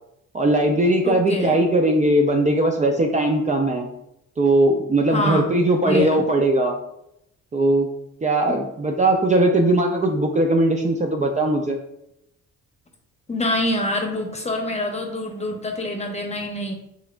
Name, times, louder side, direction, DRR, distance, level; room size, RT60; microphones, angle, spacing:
voice 1, 0.3-3.9 4.4-6.8 7.5-7.9 8.2-11.8, right 1 dB, 25° right, 2 dB, 0.5 m, -19 dB
voice 2, 1.0-1.6 5.1-5.4 5.8-6.2 8.5-8.6 13.3-16.7, left 1 dB, 20° left, 3 dB, 0.9 m, -25 dB
5.7 x 3.4 x 2.4 m, 0.80 s
cardioid pair, 90°, 30 cm